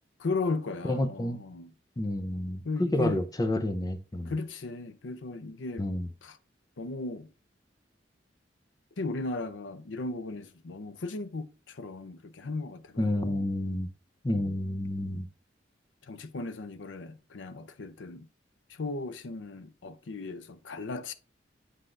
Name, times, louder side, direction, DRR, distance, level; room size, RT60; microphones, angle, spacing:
voice 1, 0.2-1.7 2.6-3.2 4.3-5.9 6.2-6.4 6.8-7.3 9.0-13.5 16.0-18.3 18.7-21.1, left 3 dB, 90° left, 0.6 m, -36 dB
voice 2, 0.8-1.4 2.0-4.3 5.8-6.1 13.0-13.9 14.2-15.3, left 1 dB, 20° left, 0.5 m, -29 dB
7.7 x 4.9 x 2.5 m
head